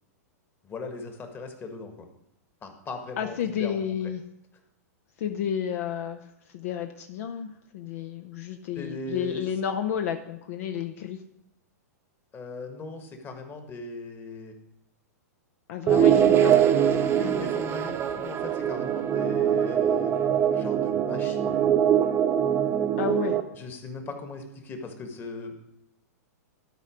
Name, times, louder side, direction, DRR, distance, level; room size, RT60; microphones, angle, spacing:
voice 1, 0.6-2.0 2.6-4.1 8.8-9.4 12.3-14.6 16.1-16.4 17.2-21.5 23.6-25.5, left 3 dB, 25° left, 5 dB, 1.5 m, -39 dB
voice 2, 3.2-4.2 5.2-11.2 15.7-17.3 18.3-18.4 22.9-23.4, left 8 dB, 60° left, 6 dB, 0.6 m, -32 dB
sound 1, 15.9-23.4, right 9 dB, 25° right, 0.8 m, -23 dB
12.5 x 4.5 x 5.0 m, 0.80 s
hypercardioid pair, 115°, 9 cm